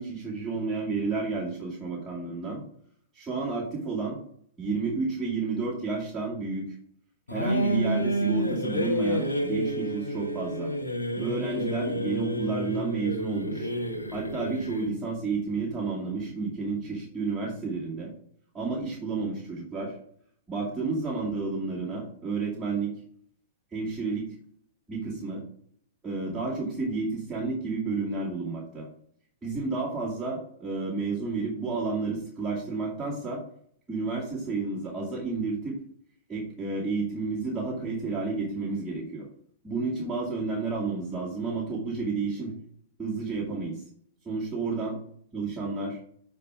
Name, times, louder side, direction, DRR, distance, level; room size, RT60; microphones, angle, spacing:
voice 1, 0.0-2.6 3.1-4.2 4.6-6.7 7.3-10.7 11.2-13.7 14.1-18.1 18.5-19.9 20.5-22.9 23.7-24.3 24.9-25.4 26.0-28.9 29.4-33.4 33.9-35.8 36.3-39.3 39.6-42.5 43.0-43.8 44.3-45.0 45.3-46.0, right 4 dB, 10° right, -9 dB, 2.4 m, -31 dB
sound 1, 7.3-15.0, equal, 85° left, 1.5 m, -29 dB
8.2 x 3.5 x 4.9 m, 0.63 s
figure-of-eight pair, 105°, 0 cm